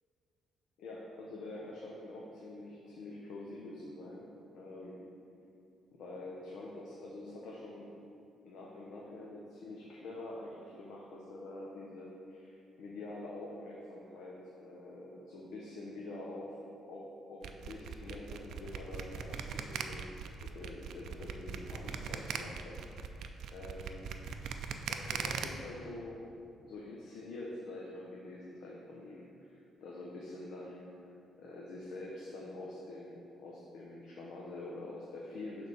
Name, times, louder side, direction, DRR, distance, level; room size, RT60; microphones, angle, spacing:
voice 1, 0.8-4.3 4.5-5.1 5.9-7.9 8.4-16.6 16.9-23.2 23.5-24.0 24.9-26.2 26.6-31.1 31.4-35.7, left 2 dB, 75° left, -3 dB, 0.8 m, -46 dB
sound 1, 17.4-25.4, right 7 dB, 75° right, 0.4 m, -39 dB
6.7 x 3.5 x 6.0 m, 2.7 s
cardioid pair, 90°, 0 cm